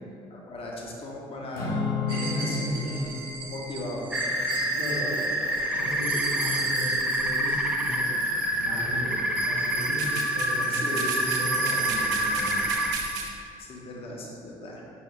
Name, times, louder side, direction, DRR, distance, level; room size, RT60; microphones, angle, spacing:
voice 1, 0.3-3.1 3.5-4.1 10.7-11.3 12.1-12.3 13.6-14.8, left 1 dB, 35° left, -2 dB, 0.7 m, -38 dB
Acoustic guitar / Strum, 1.5-6.0, left 4 dB, 55° left, 1.0 m, -34 dB
voice 2, 2.1-3.2 4.7-8.1 8.6-12.6, equal, 85° left, -7 dB, 0.7 m, -35 dB
sound 1, 2.1-13.3, right 3 dB, 60° right, 0.5 m, -34 dB
sound 2, 4.1-13.0, right 1 dB, 5° right, 0.4 m, -27 dB
5.7 x 2.3 x 3.6 m, 2.6 s
figure-of-eight pair, 50°, 17 cm